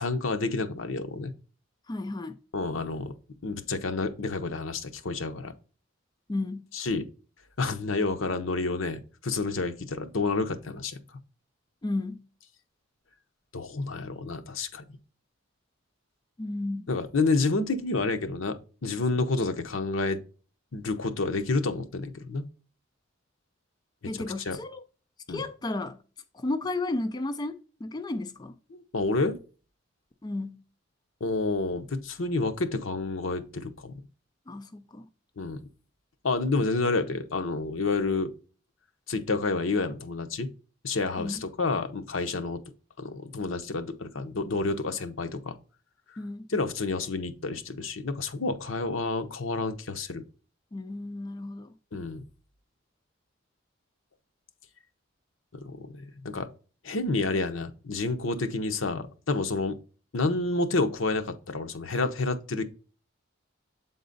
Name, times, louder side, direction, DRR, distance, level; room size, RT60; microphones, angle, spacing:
voice 1, 0.0-1.3 2.5-3.1 3.4-5.5 6.7-7.0 7.6-11.0 13.5-14.8 16.9-20.2 20.7-22.5 24.1-24.6 25.3-25.4 28.7-29.4 31.2-33.9 35.4-35.6 36.2-38.3 39.1-40.5 40.8-42.6 43.0-45.6 46.5-50.2 51.9-52.2 55.6-56.5 56.8-59.8 60.1-62.6, left 3 dB, 80° left, 0.8 m, -29 dB
voice 2, 1.9-2.4 6.3-6.7 11.8-12.2 16.4-16.9 24.1-24.8 25.3-26.0 26.3-27.6 27.8-28.6 30.2-30.6 34.5-35.1 41.2-41.4 46.2-46.4 50.7-51.7, left 2 dB, 20° left, 0.3 m, -33 dB
7.6 x 3.9 x 3.9 m
head